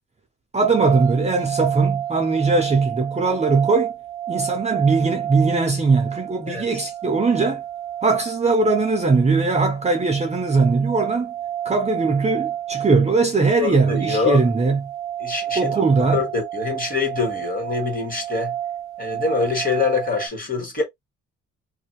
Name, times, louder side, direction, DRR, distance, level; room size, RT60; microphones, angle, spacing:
voice 1, 0.5-3.9 4.3-7.6 8.0-11.3 11.6-14.8 15.6-16.2, right 4 dB, 20° right, 0.6 m, -20 dB
sound 1, 0.6-20.3, right 11 dB, 90° right, 0.5 m, -30 dB
voice 2, 13.6-14.5 15.2-15.7 16.1-18.5 19.0-20.8, left 4 dB, 30° left, 1.6 m, -24 dB
2.7 x 2.2 x 3.0 m
cardioid pair, 90°, 30 cm